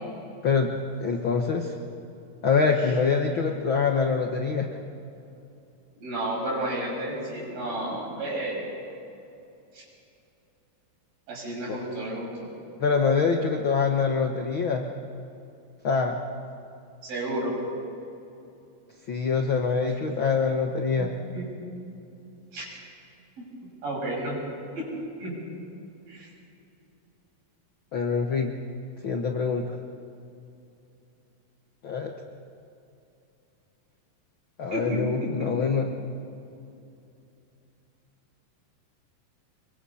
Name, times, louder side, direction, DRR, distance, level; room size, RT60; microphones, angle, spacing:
voice 1, 1.0-1.8 2.4-4.7 11.7-11.8 12.8-14.9 15.8-16.2 19.1-21.1 27.9-28.6 29.0-29.8 31.8-32.1 34.6-35.9, left 5 dB, 70° left, 3 dB, 1.2 m, -25 dB
voice 2, 6.0-8.6 9.7-9.8 11.3-12.5 17.0-17.6 21.3-21.4 22.5-22.7 23.4-23.5 23.8-24.4 24.8-24.9 25.2-25.3 26.1-26.3 34.7-35.0, right 1 dB, 85° right, -4 dB, 8.9 m, -31 dB
26.0 x 23.5 x 5.7 m, 2.7 s
omnidirectional pair, 4.0 m